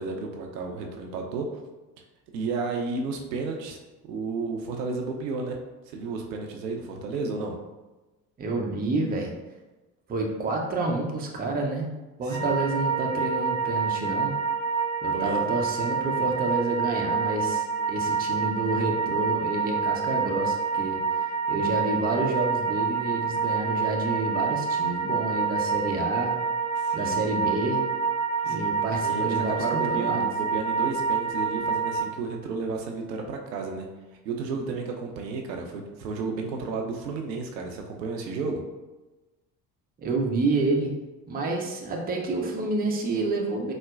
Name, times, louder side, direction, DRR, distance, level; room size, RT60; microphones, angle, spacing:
voice 1, 0.0-1.5 2.3-3.8 4.1-5.6 5.9-7.5 12.3-12.5 15.1-15.4 26.8-27.2 28.4-28.7 29.0-33.9 34.2-38.6, right 4 dB, 80° right, 2 dB, 0.6 m, -32 dB
voice 2, 8.4-9.3 10.1-11.9 12.2-14.3 15.0-26.3 26.9-27.8 28.4-30.2 40.0-40.9 41.3-43.7, right 2 dB, 20° right, 0 dB, 0.5 m, -29 dB
sound 1, 12.3-32.0, right 5 dB, 30° left, 1.0 m, -27 dB
4.0 x 2.1 x 2.4 m, 1.1 s
figure-of-eight pair, 60°, 49 cm